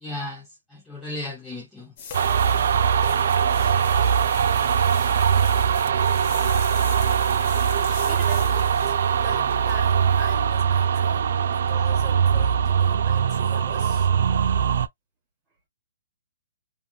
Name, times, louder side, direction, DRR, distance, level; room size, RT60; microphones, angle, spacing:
voice 1, 0.0-1.9, left 2 dB, 5° left, 0.5 m, -35 dB
sound 1, 2.0-10.3, left 6 dB, 30° left, 0.8 m, -41 dB
sound 2, 2.1-14.9, right 7 dB, 55° right, 0.3 m, -21 dB
voice 2, 5.2-5.8 7.7-14.1, right 3 dB, 10° right, 1.2 m, -41 dB
3.0 x 2.3 x 2.2 m
hypercardioid pair, 165°, 0 cm